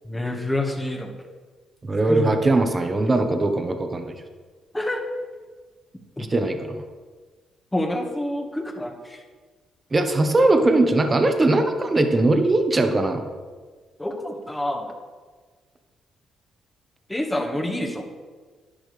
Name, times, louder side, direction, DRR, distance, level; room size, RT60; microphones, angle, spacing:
voice 1, 0.0-1.1 2.1-2.3 4.7-5.0 6.2-6.3 7.7-9.2 14.0-14.9 17.1-18.0, left 1 dB, 10° left, 2 dB, 1.6 m, -27 dB
voice 2, 1.8-4.1 6.3-6.8 9.9-13.2, right 2 dB, 25° right, 6 dB, 1.2 m, -20 dB
11.5 x 10.0 x 3.4 m, 1.5 s
cardioid pair, 90°, 0 cm